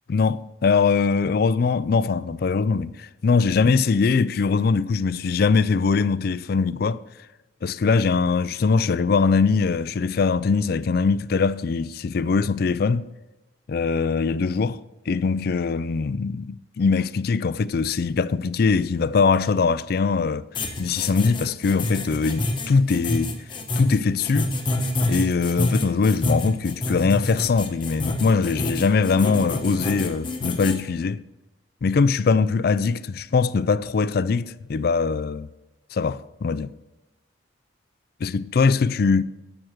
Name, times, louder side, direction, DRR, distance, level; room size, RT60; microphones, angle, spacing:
voice 1, 0.1-7.0 7.6-13.1 13.7-14.8 15.1-20.5 20.8-23.4 23.8-24.5 25.1-31.2 31.8-35.5 35.9-36.7 38.2-39.2, left 4 dB, 50° left, 0.4 m, -22 dB
sound 1, 20.5-30.8, left 2 dB, 25° left, 1.0 m, -27 dB
14.0 x 6.0 x 5.0 m
head